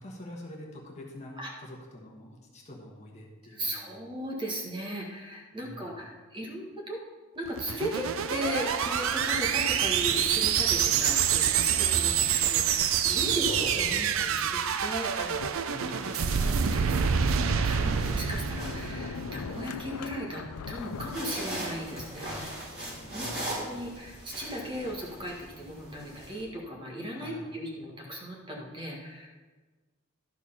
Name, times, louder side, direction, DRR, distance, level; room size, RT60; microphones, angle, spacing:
voice 1, 0.0-3.9 5.5-6.0 13.1-13.4 15.6-16.1 23.0-23.8 27.1-27.5, left 1 dB, 30° left, -1 dB, 1.3 m, -46 dB
voice 2, 3.5-7.0 7.3-15.4 16.0-22.3 23.1-23.3 23.6-29.3, equal, 20° right, -2 dB, 1.6 m, -37 dB
sound 1, 7.5-19.8, right 8 dB, 65° right, 0.5 m, -27 dB
sound 2, 13.5-14.4 15.9-17.1 17.5-19.6 20.7-26.4, equal, 45° right, 2.9 m, -40 dB
Sliding door, 15.4-16.3 16.8-16.9 17.5-22.3, left 6 dB, 85° left, 0.4 m, -41 dB
12.0 x 4.6 x 5.7 m, 1.3 s
head